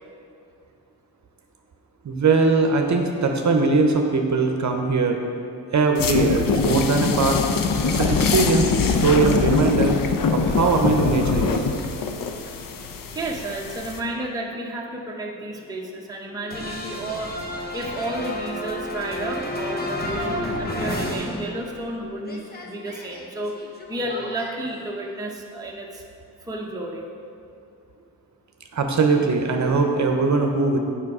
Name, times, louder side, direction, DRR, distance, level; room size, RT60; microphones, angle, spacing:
voice 1, 2.0-5.2 5.7-7.4 7.9-10.0 10.3-11.6 28.7-30.8, right 4 dB, 45° right, 3 dB, 0.8 m, -20 dB
sound 1, 6.0-14.0, left 5 dB, 55° left, 0.6 m, -23 dB
voice 2, 13.1-17.3 17.7-23.6 23.9-26.0 26.5-27.1, right 1 dB, 10° right, -1 dB, 0.7 m, -31 dB
sound 2, 16.5-22.0 22.2-24.6, left 1 dB, 25° left, 1.0 m, -31 dB
7.4 x 5.8 x 4.8 m, 2.5 s
cardioid pair, 105°, 40 cm